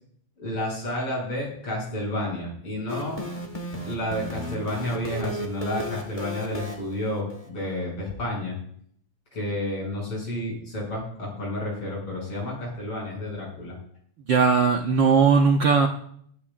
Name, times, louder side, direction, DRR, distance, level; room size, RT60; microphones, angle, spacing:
voice 1, 0.4-3.2 3.8-8.6 9.3-13.8, left 1 dB, 45° left, -2 dB, 7.8 m, -30 dB
sound 1, 2.9-7.5, equal, 20° left, 1.1 m, -35 dB
voice 2, 14.3-15.9, right 5 dB, 80° right, 3 dB, 1.0 m, -18 dB
24.5 x 12.0 x 2.5 m, 0.64 s
omnidirectional pair, 3.4 m